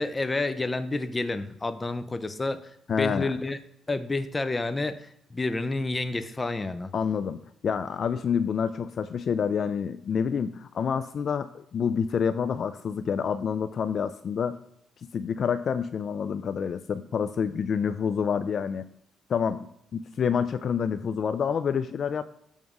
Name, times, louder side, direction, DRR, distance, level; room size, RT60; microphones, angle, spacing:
voice 1, 0.0-3.6 3.9-6.9, left 2 dB, 20° left, 11 dB, 0.7 m, -29 dB
voice 2, 2.9-3.3 6.9-14.6 15.1-18.8 19.3-22.2, left 7 dB, 55° left, 11 dB, 0.4 m, -28 dB
7.2 x 3.5 x 6.2 m, 0.75 s
cardioid pair, 90°, 0 cm